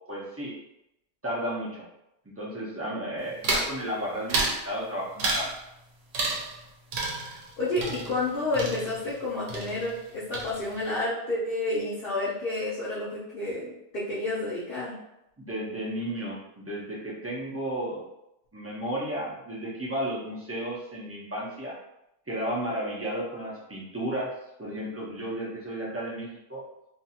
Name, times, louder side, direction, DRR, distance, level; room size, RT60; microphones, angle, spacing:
voice 1, 0.1-0.6 1.2-1.9 2.4-5.5 15.4-18.0 18.5-21.7 22.3-24.3 24.6-26.6, right 1 dB, 20° right, -6 dB, 0.4 m, -33 dB
sound 1, 3.4-3.8 4.3-4.6 5.2-5.6 6.1-6.6 6.9-9.2 9.5-10.1 10.3-10.9, right 3 dB, 75° right, 1.0 m, -30 dB
voice 2, 7.6-14.9, left 2 dB, 55° left, -8 dB, 0.8 m, -30 dB
2.6 x 2.4 x 2.8 m, 0.86 s
omnidirectional pair, 1.3 m